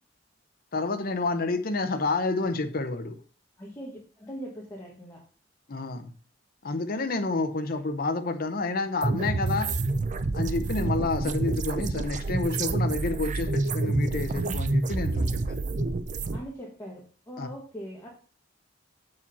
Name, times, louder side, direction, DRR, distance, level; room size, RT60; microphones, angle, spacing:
voice 1, 0.7-3.2 5.7-6.1 6.6-9.7 10.3-15.6 17.4-17.5, left 3 dB, 50° left, 0.7 m, -29 dB
voice 2, 3.6-5.2 16.3-18.1, equal, 15° left, 1.5 m, -41 dB
sound 1, 9.0-16.4, right 2 dB, 40° right, 0.5 m, -28 dB
7.3 x 4.9 x 4.1 m
head